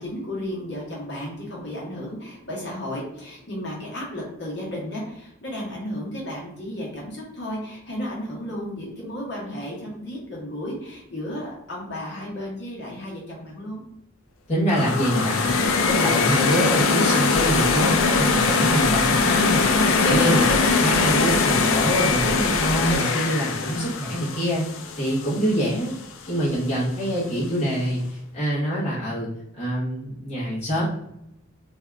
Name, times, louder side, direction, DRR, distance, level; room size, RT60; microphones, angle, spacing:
voice 1, 0.0-13.8, left 1 dB, 55° left, -4 dB, 1.1 m, -33 dB
voice 2, 14.5-19.6 20.0-24.6 25.0-25.9 26.3-29.3 29.6-30.8, equal, 30° left, -9 dB, 0.9 m, -25 dB
sound 1, 14.7-25.7, left 4 dB, 75° left, 0.4 m, -21 dB
sound 2, 17.3-23.0, left 1 dB, 15° right, 0.8 m, -34 dB
2.7 x 2.3 x 3.3 m, 0.80 s
head